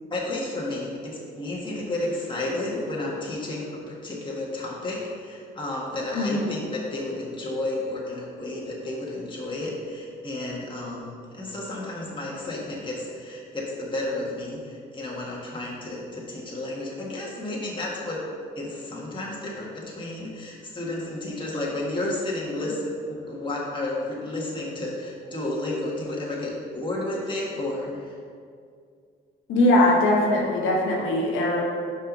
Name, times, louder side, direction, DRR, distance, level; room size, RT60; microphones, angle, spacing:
voice 1, 0.1-18.2 18.5-28.2, left 2 dB, 25° left, -5 dB, 1.6 m, -32 dB
voice 2, 6.1-6.5 29.5-31.6, left 1 dB, 80° left, -2 dB, 1.1 m, -21 dB
5.6 x 4.9 x 5.4 m, 2.2 s
cardioid pair, 90°, 20 cm